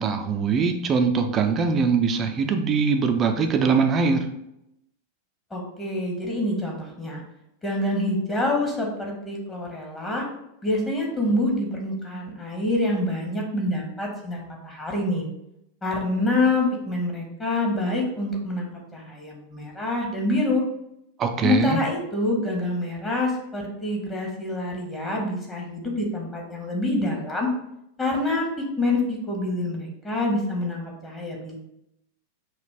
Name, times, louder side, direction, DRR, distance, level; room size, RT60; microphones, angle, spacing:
voice 1, 0.0-4.3 21.2-21.8, right 5 dB, 25° right, 5 dB, 0.6 m, -22 dB
voice 2, 5.5-7.2 7.6-10.2 10.6-15.2 15.8-20.6 21.4-27.5 28.0-31.6, left 2 dB, 15° left, -1 dB, 1.3 m, -26 dB
6.0 x 2.4 x 3.3 m, 0.80 s
figure-of-eight pair, 90°, 0 cm